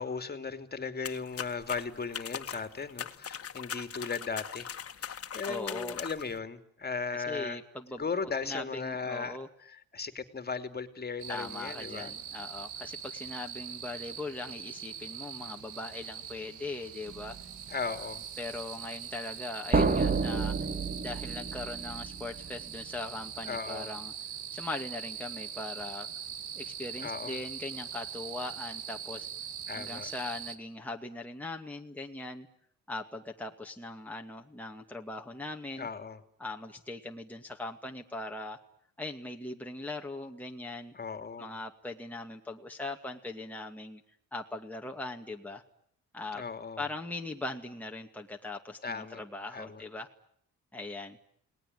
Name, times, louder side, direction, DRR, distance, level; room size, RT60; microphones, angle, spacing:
voice 1, 0.0-4.7 5.0-7.6 8.0-12.1 17.7-18.2 23.4-23.9 27.0-27.4 29.7-30.1 35.8-36.2 40.9-41.5 46.3-46.8 48.8-49.2 49.5-49.8, left 5 dB, 30° left, 8 dB, 3.0 m, -37 dB
sound 1, 1.0-6.4, left 8 dB, 50° left, 1.9 m, -41 dB
voice 2, 5.4-6.0 7.1-8.0 8.4-9.5 11.3-17.4 18.4-20.6 21.0-24.1 24.5-26.1 26.5-29.3 29.7-32.5 32.9-35.9 36.4-38.6 39.0-40.9 41.4-44.0 44.3-45.6 46.1-46.4 46.8-50.1 50.7-51.2, left 2 dB, 5° left, 1 dB, 2.3 m, -40 dB
sound 2, 11.2-30.6, right 8 dB, 80° right, 2.4 m, -42 dB
sound 3, 17.1-17.4 19.7-22.4, right 4 dB, 30° right, 2.0 m, -29 dB
29.5 x 20.0 x 9.5 m, 0.69 s
cardioid pair, 90°, 30 cm